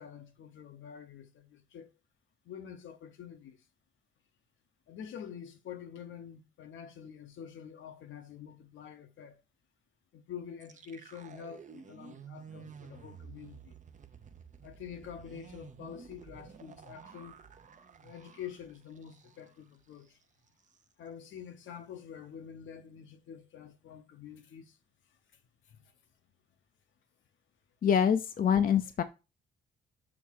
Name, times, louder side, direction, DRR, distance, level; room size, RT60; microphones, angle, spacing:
voice 1, 0.0-1.9 2.4-3.6 4.9-9.4 10.1-13.7 14.6-17.4 18.0-20.2 21.0-24.8 25.7-25.8, left 8 dB, 75° left, 1.0 m, -47 dB
sound 1, 10.6-19.6 19.9-20.1 20.5-20.8, right 7 dB, 40° right, 0.7 m, -52 dB
voice 2, 27.8-29.0, left 8 dB, 45° left, 0.6 m, -25 dB
6.2 x 3.5 x 4.5 m
cardioid pair, 90°, 20 cm